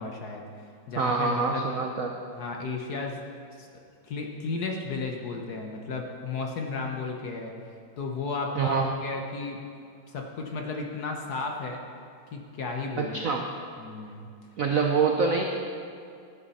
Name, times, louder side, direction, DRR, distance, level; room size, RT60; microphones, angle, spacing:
voice 1, 0.0-1.6 2.3-3.2 3.6-3.7 4.0-7.5 8.0-9.6 10.1-11.8 12.3-13.2 13.8-14.3, left 4 dB, 55° left, 1 dB, 1.3 m, -34 dB
voice 2, 1.0-2.1 8.5-8.9 12.9-13.5 14.6-15.4, right 4 dB, 70° right, 3 dB, 0.8 m, -25 dB
14.5 x 9.7 x 4.2 m, 2.3 s
omnidirectional pair, 2.4 m